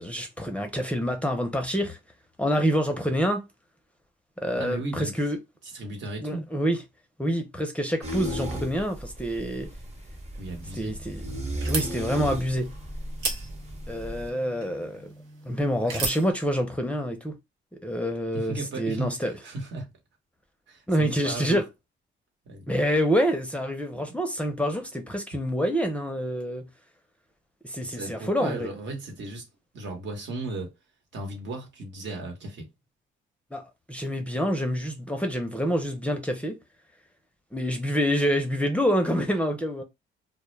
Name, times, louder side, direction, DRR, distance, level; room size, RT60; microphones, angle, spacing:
voice 1, 0.0-2.0 2.4-3.5 4.4-5.4 6.2-6.8 7.2-9.7 10.8-11.2 11.7-12.7 13.9-15.1 15.5-17.3 17.8-19.4 20.9-21.6 22.7-26.6 27.6-28.7 33.5-33.6 33.9-36.6 37.5-39.8, equal, 5° left, 0.5 m, -27 dB
voice 2, 4.5-5.1 5.6-6.5 10.4-10.9 18.3-19.9 20.7-21.6 22.5-22.7 23.9-24.2 25.3-25.4 27.8-29.5 29.7-30.7 31.1-32.7, right 2 dB, 65° right, 1.1 m, -35 dB
sound 1, 8.0-14.3, equal, 35° right, 0.8 m, -35 dB
sound 2, 10.4-16.3, right 4 dB, 85° right, 0.9 m, -37 dB
2.1 x 2.1 x 3.1 m
cardioid pair, 90°, 20 cm